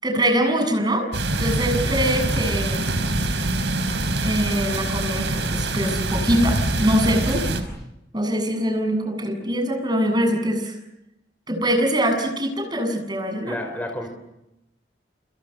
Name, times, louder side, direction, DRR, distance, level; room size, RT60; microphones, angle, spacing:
voice 1, 0.0-1.1 1.4-2.9 4.2-7.4 8.1-10.8 11.5-13.6, equal, 25° right, 5 dB, 7.5 m, -23 dB
sound 1, 1.1-7.6, right 2 dB, 85° right, 5.1 m, -24 dB
voice 2, 13.4-14.1, left 1 dB, 10° left, 4 dB, 4.7 m, -30 dB
29.5 x 28.5 x 6.8 m, 0.88 s
head